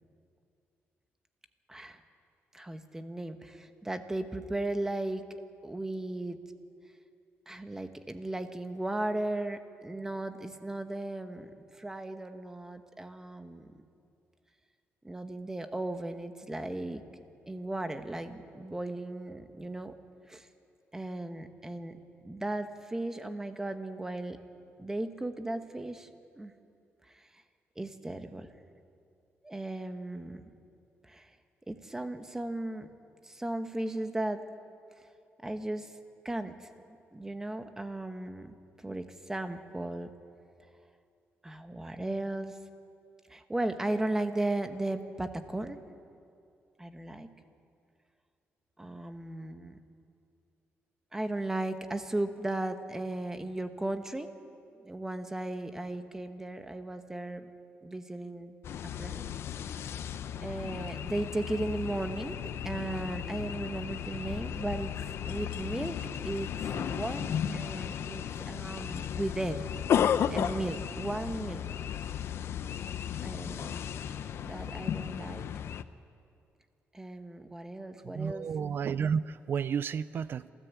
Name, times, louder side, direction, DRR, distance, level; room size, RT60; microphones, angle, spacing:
voice 1, 1.7-2.0 2.5-5.2 5.6-6.4 7.5-13.8 15.0-17.0 17.5-19.9 20.3-20.5 20.9-24.4 24.8-26.1 26.3-26.5 27.1-27.4 27.8-28.5 29.4-30.4 31.0-31.4 31.7-32.9 33.2-34.4 35.0-35.1 35.4-36.0 36.2-36.7 37.1-40.1 41.4-42.6 43.3-45.8 46.8-47.3 48.8-49.8 51.1-54.3 54.8-57.5 57.8-58.6 58.8-59.3 59.7-59.8 60.4-64.9 65.2-69.7 70.3-71.6 72.7-72.8 73.2-73.9 74.4-75.5 76.9-78.5, right 2 dB, 10° right, 8 dB, 1.2 m, -36 dB
sound 1, 58.6-75.8, left 9 dB, 65° left, 0.7 m, -34 dB
voice 2, 78.0-80.5, right 7 dB, 50° right, 16 dB, 0.4 m, -32 dB
27.0 x 14.0 x 8.3 m, 2.5 s
cardioid pair, 135°, 5 cm